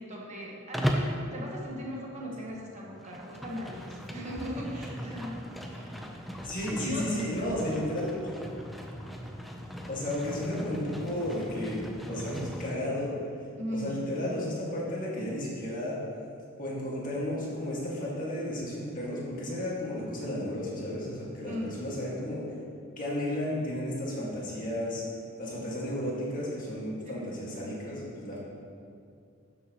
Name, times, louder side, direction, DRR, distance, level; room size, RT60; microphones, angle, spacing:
voice 1, 0.0-6.0 6.8-7.1 13.6-14.0 21.4-21.8 27.0-27.2, equal, 35° right, -4 dB, 1.4 m, -38 dB
Livestock farm animals working animals, 0.7-1.2 2.9-12.7, equal, ahead, 0.6 m, -37 dB
voice 2, 6.4-8.2 9.8-11.8 12.1-13.2 13.7-16.0 16.6-22.4 23.0-25.0 25.4-28.4, left 1 dB, 40° left, -5 dB, 1.9 m, -33 dB
12.5 x 6.7 x 3.0 m, 2.4 s
head